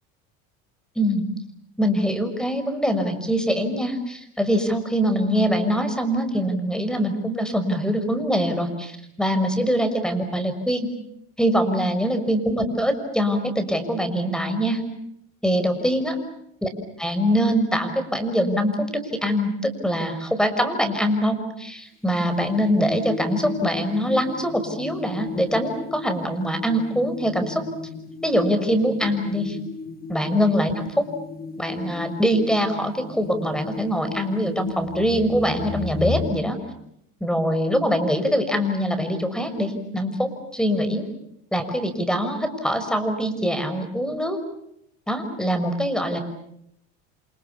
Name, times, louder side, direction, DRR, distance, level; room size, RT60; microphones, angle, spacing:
voice 1, 1.0-1.3 1.8-10.9 11.4-14.8 15.4-16.2 16.6-16.7 17.0-18.9 19.1-27.6 28.2-29.6 30.1-31.0 31.6-36.6 37.2-41.0 41.5-44.4 45.1-46.2, equal, ahead, 9 dB, 6.0 m, -23 dB
sound 1, 22.1-36.3, left 5 dB, 25° left, 2.9 m, -35 dB
28.5 x 28.0 x 7.1 m, 0.76 s
supercardioid pair, 95°, 37 cm